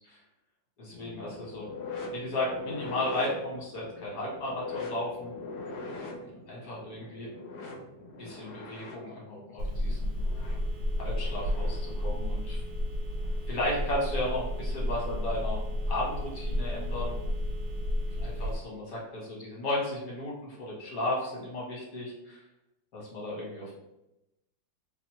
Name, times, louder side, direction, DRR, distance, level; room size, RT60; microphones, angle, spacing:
voice 1, 0.8-1.7 2.1-5.3 6.5-7.3 8.2-10.2 11.0-12.6 13.5-15.6 15.9-17.1 18.2-22.4 22.9-23.8, left 1 dB, 55° left, -5 dB, 1.4 m, -34 dB
sound 1, 0.9-11.9 13.2-13.4 14.3-14.4, left 2 dB, 75° left, 1.1 m, -42 dB
Telephone, 9.6-18.6, left 1 dB, 80° right, 1.3 m, -32 dB
3.1 x 2.0 x 3.0 m, 0.92 s
omnidirectional pair, 2.0 m